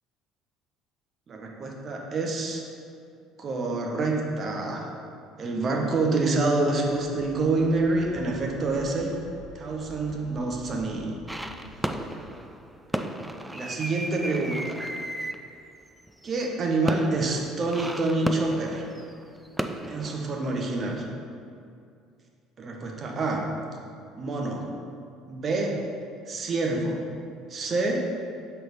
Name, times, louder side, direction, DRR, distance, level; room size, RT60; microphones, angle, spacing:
voice 1, 1.3-2.6 3.4-4.9 5.4-9.2 9.5-11.2 13.5-14.9 16.2-18.8 19.9-21.0 22.6-23.4 24.1-24.7 25.3-25.8 26.3-27.0 27.5-28.0, right 3 dB, 35° right, 0 dB, 1.1 m, -27 dB
sound 1, 6.6-12.5, left 2 dB, 75° left, 0.6 m, -47 dB
sound 2, 11.3-21.0, right 1 dB, 5° right, 0.4 m, -35 dB
6.1 x 4.6 x 5.0 m, 2.4 s
figure-of-eight pair, 60°, 0 cm